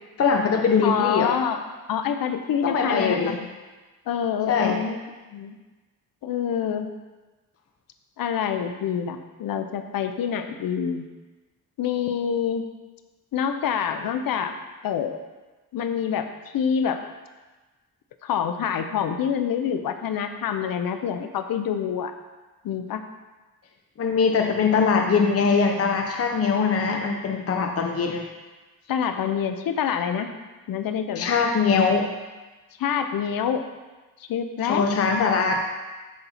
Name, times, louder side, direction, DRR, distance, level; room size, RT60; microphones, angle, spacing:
voice 1, 0.2-1.3 2.6-3.4 4.5-4.8 24.0-28.3 31.2-32.1 34.6-35.6, left 5 dB, 40° left, 3 dB, 0.7 m, -22 dB
voice 2, 0.8-1.6 1.9-3.5 4.1-5.0 5.3-5.6 6.2-6.9 8.2-11.1 11.8-12.6 13.3-14.5 14.8-15.2 15.7-16.3 16.5-17.0 18.2-22.1 22.6-23.0 28.9-30.3 30.7-31.3 32.8-33.6 34.2-34.8, left 8 dB, 75° left, 8 dB, 0.7 m, -26 dB
12.5 x 4.3 x 4.1 m, 1.2 s
cardioid pair, 105°, 35 cm